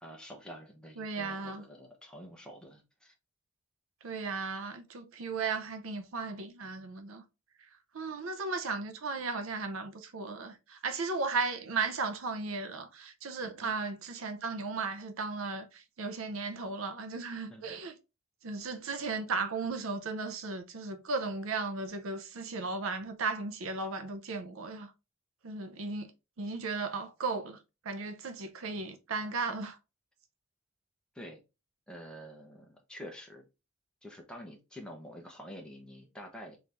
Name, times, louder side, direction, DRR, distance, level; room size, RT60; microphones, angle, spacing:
voice 1, 0.0-3.1 13.4-13.7 17.5-17.6 31.1-31.4 31.9-33.5 34.0-36.6, equal, 5° left, 0.8 m, -47 dB
voice 2, 1.0-1.6 4.0-7.2 7.9-17.9 18.4-24.9 25.4-26.1 26.4-27.6 27.8-29.8, right 4 dB, 75° right, 0.5 m, -35 dB
3.9 x 3.0 x 3.3 m
head